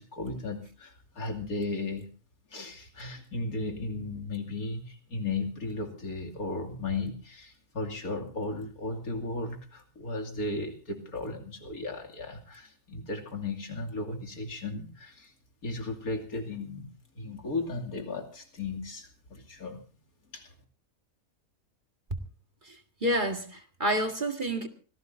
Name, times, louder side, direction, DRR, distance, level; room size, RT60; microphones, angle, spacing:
voice 1, 0.0-2.1 2.5-15.3 15.6-16.9 17.1-19.8 20.3-20.5, left 3 dB, 70° left, 3.0 m, -35 dB
voice 2, 23.0-24.7, right 1 dB, 30° right, 2.0 m, -29 dB
25.5 x 17.0 x 2.7 m
omnidirectional pair, 1.6 m